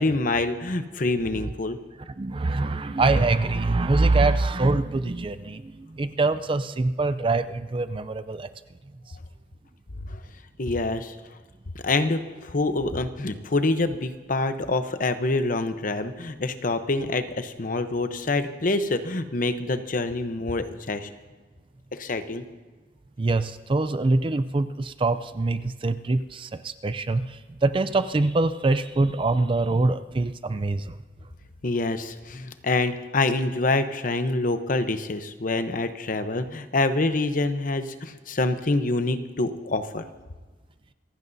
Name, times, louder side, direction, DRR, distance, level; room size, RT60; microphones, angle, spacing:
voice 1, 0.0-1.8 10.0-10.2 10.6-11.1 11.7-21.1 21.9-22.4 31.6-40.1, left 2 dB, 45° left, 9 dB, 0.8 m, -26 dB
voice 2, 2.2-8.5 23.2-31.0, right 2 dB, 30° right, 12 dB, 0.4 m, -24 dB
27.0 x 15.5 x 2.7 m, 1.3 s
head